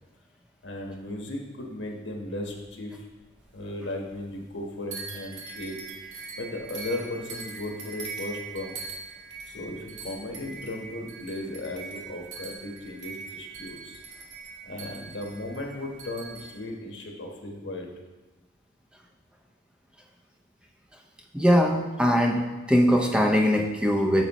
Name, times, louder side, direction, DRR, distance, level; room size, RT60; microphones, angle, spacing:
voice 1, 0.6-3.1 3.5-8.8 9.5-14.0 14.6-17.9, left 1 dB, 75° left, 1 dB, 1.2 m, -36 dB
sound 1, 2.1-3.7 4.0-4.6 4.9-16.6, right 4 dB, 80° right, 1.3 m, -42 dB
voice 2, 21.3-24.2, equal, 5° right, 2 dB, 0.5 m, -21 dB
9.0 x 6.7 x 3.0 m, 1.1 s
head